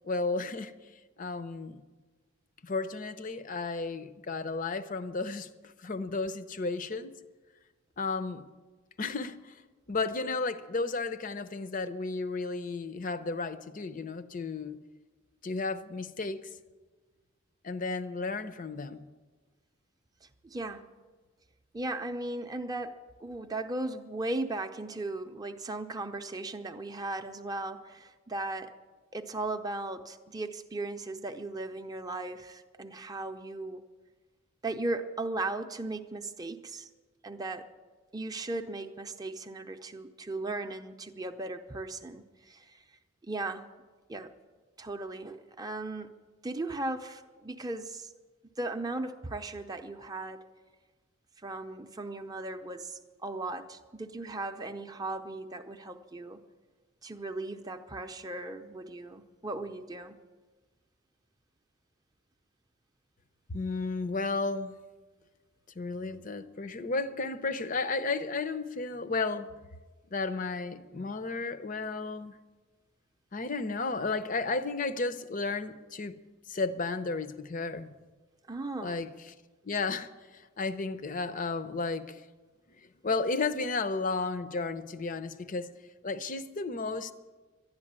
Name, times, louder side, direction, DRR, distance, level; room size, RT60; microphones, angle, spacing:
voice 1, 0.0-0.7 1.2-1.8 2.6-7.1 8.0-8.5 9.0-9.6 9.9-14.8 15.4-16.5 17.6-19.1 63.5-64.8 65.8-69.5 70.1-72.3 73.3-76.2 76.5-77.9 78.8-79.3 79.6-82.2 83.0-85.7 86.0-87.1, left 3 dB, 40° left, 0.6 m, -33 dB
voice 2, 20.2-20.9 21.7-28.7 29.1-33.8 34.6-36.9 37.2-37.7 38.1-42.8 43.2-43.7 44.1-44.3 44.8-46.1 46.4-48.1 48.6-50.4 51.4-56.4 57.0-60.2 78.5-79.0, right 2 dB, 20° right, 0.5 m, -37 dB
11.5 x 11.0 x 8.7 m
head